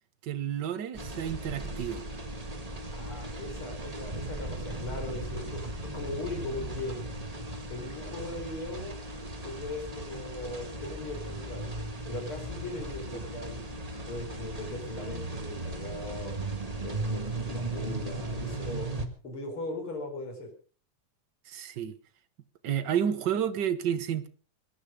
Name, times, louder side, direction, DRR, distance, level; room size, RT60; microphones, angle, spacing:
voice 1, 0.2-2.0 13.1-13.2 21.4-21.9 22.6-24.3, right 9 dB, 55° right, 1.3 m, -30 dB
sound 1, 1.0-19.1, right 2 dB, 20° right, 1.0 m, -37 dB
voice 2, 2.9-7.0 7.7-9.0 9.4-11.7 12.1-13.6 14.1-16.4 16.8-18.9 19.2-20.5, left 2 dB, 45° left, 5.7 m, -39 dB
22.0 x 11.5 x 5.3 m
omnidirectional pair, 3.4 m